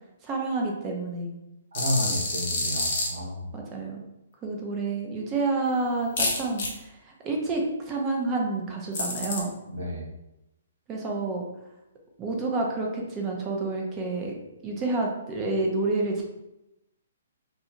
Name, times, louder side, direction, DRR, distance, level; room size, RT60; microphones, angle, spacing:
voice 1, 0.2-1.3 3.5-4.0 4.4-9.5 10.9-11.5 12.2-14.4 14.6-16.2, right 3 dB, 25° right, 0 dB, 0.6 m, -29 dB
sound 1, 1.7-3.1 6.2-6.7 8.9-9.4, left 2 dB, 50° left, 0.8 m, -27 dB
voice 2, 1.7-3.5 9.7-10.1, equal, 75° right, -3 dB, 0.9 m, -31 dB
2.4 x 2.3 x 2.9 m, 0.92 s
hypercardioid pair, 140°, 0 cm